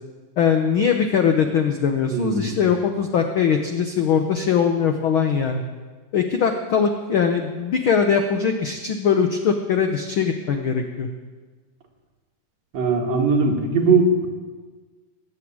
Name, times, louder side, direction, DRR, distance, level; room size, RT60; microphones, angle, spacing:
voice 1, 0.4-5.6 6.1-11.1, left 7 dB, 90° left, 5 dB, 1.1 m, -21 dB
voice 2, 2.1-2.6 12.7-14.2, right 3 dB, 60° right, 1 dB, 2.9 m, -20 dB
19.0 x 8.3 x 8.7 m, 1.4 s
omnidirectional pair, 3.6 m